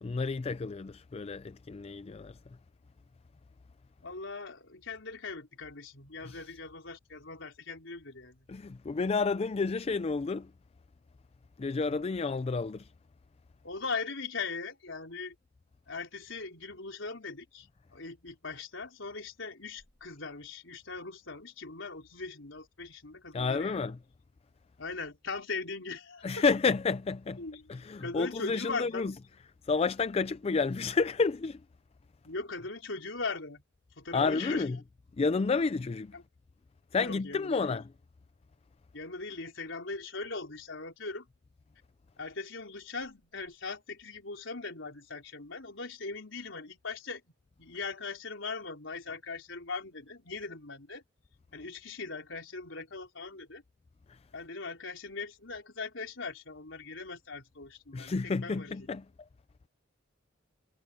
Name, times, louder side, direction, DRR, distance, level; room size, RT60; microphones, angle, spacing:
voice 1, 0.0-2.4 6.2-6.4 8.5-10.5 11.6-12.9 23.3-24.0 26.2-27.4 27.7-29.1 29.6-31.6 34.1-34.8 35.2-36.2 36.9-37.9 54.1-54.2 57.9-59.0, left 4 dB, 30° left, 0.4 m, -30 dB
voice 2, 4.0-8.5 13.6-15.3 15.9-23.9 24.8-26.4 27.4-29.1 32.2-33.6 34.0-34.7 36.1-36.2 37.0-37.8 38.9-41.3 42.2-47.2 47.6-51.0 51.5-53.6 54.3-58.9, left 4 dB, 75° left, 4.2 m, -40 dB
head